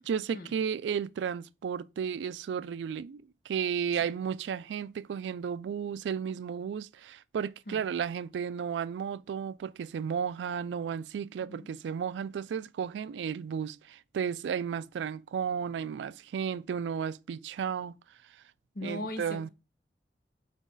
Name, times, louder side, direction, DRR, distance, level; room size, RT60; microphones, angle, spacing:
voice 1, 0.0-18.0 18.8-19.5, right 7 dB, 90° right, 0.3 m, -33 dB
voice 2, 18.7-19.5, left 1 dB, 55° left, 0.9 m, -39 dB
6.2 x 4.0 x 3.8 m
head